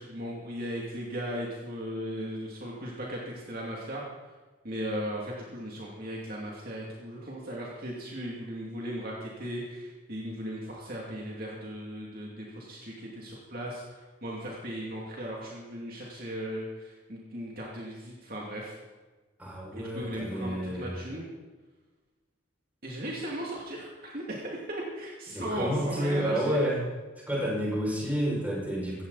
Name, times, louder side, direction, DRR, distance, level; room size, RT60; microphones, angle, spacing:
voice 1, 0.0-4.0 4.6-18.7 19.7-21.3 22.8-26.6, equal, 45° right, -4 dB, 2.7 m, -37 dB
voice 2, 19.4-21.0 25.3-26.8 27.3-29.0, equal, 10° right, -5 dB, 6.1 m, -30 dB
17.5 x 15.5 x 4.2 m, 1.3 s
head